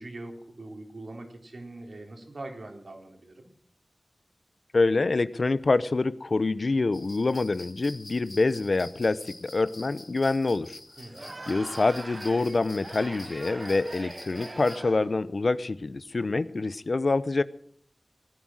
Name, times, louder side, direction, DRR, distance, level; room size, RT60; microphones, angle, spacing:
voice 1, 0.0-3.5 11.0-11.4, right 2 dB, 70° right, 3 dB, 3.5 m, -42 dB
voice 2, 4.7-10.8 11.5-17.4, left 3 dB, 60° left, 15 dB, 0.7 m, -26 dB
sound 1, 6.9-14.8, left 2 dB, 40° left, 1.8 m, -47 dB
Crowd, 11.0-15.2, right 2 dB, 50° right, 0.7 m, -42 dB
18.0 x 10.5 x 6.2 m, 0.67 s
wide cardioid pair, 60°, 0 cm